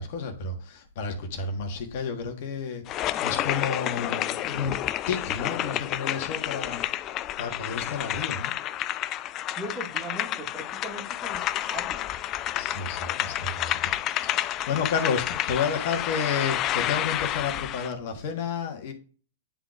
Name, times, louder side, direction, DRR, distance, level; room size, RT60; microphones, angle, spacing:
voice 1, 0.0-8.5 12.5-13.9 14.2-18.9, left 5 dB, 55° left, 4 dB, 1.4 m, -31 dB
sound 1, 2.9-17.9, left 13 dB, 35° left, 0.3 m, -30 dB
voice 2, 9.6-12.1, right 1 dB, 10° right, 1 dB, 1.8 m, -39 dB
9.9 x 3.9 x 2.5 m, 0.38 s
hypercardioid pair, 110°, 0 cm